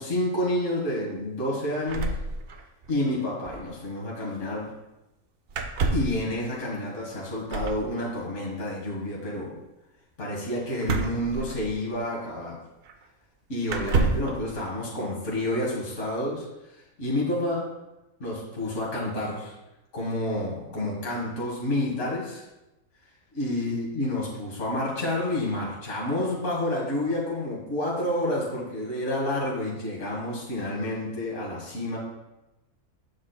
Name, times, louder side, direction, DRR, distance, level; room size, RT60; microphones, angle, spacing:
voice 1, 0.0-2.1 2.9-4.7 5.9-9.6 10.2-12.6 13.5-16.5 16.7-17.7 18.2-19.6 19.9-22.4 23.3-32.0, left 1 dB, 55° left, -5 dB, 2.0 m, -29 dB
sound 1, 1.9-2.9 3.2-3.3 3.5-3.7 5.5-6.2 7.5-7.9 10.8-12.0 12.8-12.9 13.7-14.4, right 4 dB, 55° right, 0.7 m, -28 dB
8.6 x 6.0 x 2.2 m, 0.98 s
omnidirectional pair, 1.5 m